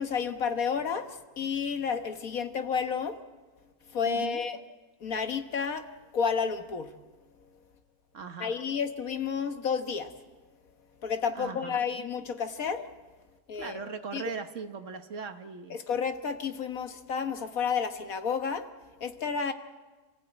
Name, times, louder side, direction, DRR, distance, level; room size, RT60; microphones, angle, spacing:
voice 1, 0.0-3.2 3.9-4.6 5.0-5.9 6.1-6.9 8.4-10.1 11.0-12.8 13.5-13.8 14.1-14.2 15.7-18.7 19.0-19.5, left 6 dB, 60° left, 8 dB, 1.7 m, -31 dB
voice 2, 4.0-4.4 8.1-8.6 11.3-11.8 13.6-15.8, right 6 dB, 55° right, 8 dB, 1.4 m, -39 dB
28.0 x 15.5 x 8.8 m, 1.2 s
omnidirectional pair, 1.7 m